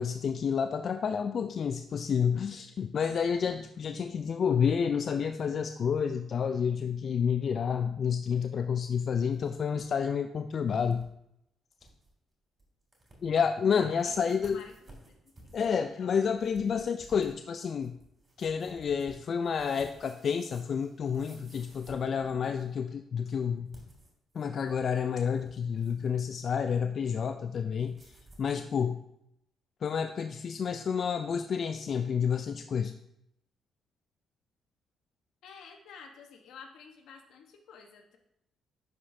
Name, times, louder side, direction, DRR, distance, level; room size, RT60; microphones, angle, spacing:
voice 1, 0.0-11.0 13.2-14.6 15.5-17.9 18.4-23.7 24.3-28.0 28.4-29.0 29.8-33.0, left 7 dB, 55° left, 8 dB, 0.3 m, -29 dB
voice 2, 2.3-2.6 13.9-16.2 35.4-38.2, left 6 dB, 80° left, 3 dB, 1.1 m, -52 dB
Headphone Mic noise, 9.0-9.9 10.2-10.3 10.9-11.1 11.5-11.6 11.8-12.1 12.6-12.7 12.9-13.4 13.9-22.7 23.6-24.9 25.2-26.2 27.9-28.5, right 1 dB, 25° right, 2.9 m, -56 dB
10.5 x 5.1 x 2.7 m, 0.80 s
cardioid pair, 90°, 0 cm